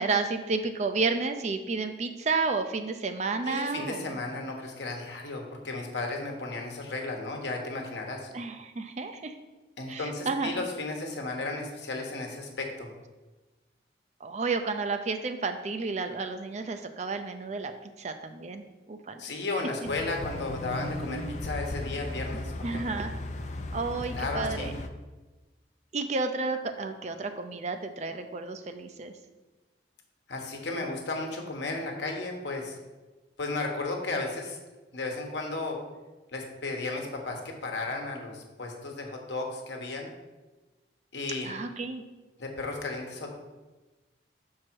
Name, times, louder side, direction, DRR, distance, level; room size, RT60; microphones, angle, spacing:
voice 1, 0.0-4.2 8.3-9.4 9.9-10.6 14.2-19.3 22.3-23.2 23.7-24.7 25.9-29.1 41.4-42.0, right 4 dB, 40° right, 7 dB, 0.4 m, -31 dB
voice 2, 3.5-8.3 9.8-12.9 19.2-22.8 24.1-24.7 30.3-32.8 33.4-34.6 34.9-35.8 36.3-40.1 41.1-41.5 42.4-43.3, left 3 dB, 75° left, 2 dB, 1.1 m, -34 dB
sound 1, 19.8-24.9, left 1 dB, 40° left, 0.4 m, -36 dB
6.1 x 4.7 x 4.5 m, 1.2 s
head